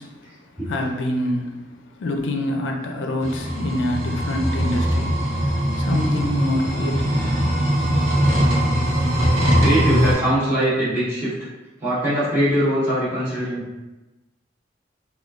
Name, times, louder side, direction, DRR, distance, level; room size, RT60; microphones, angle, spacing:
voice 1, 0.0-5.4 5.8-7.3, left 1 dB, 75° left, 2 dB, 0.4 m, -26 dB
sound 1, 3.2-10.1, equal, 85° right, 0.8 m, -21 dB
voice 2, 9.6-11.3 11.8-13.6, right 1 dB, 15° right, -13 dB, 1.2 m, -21 dB
3.6 x 2.3 x 2.3 m, 1.1 s
head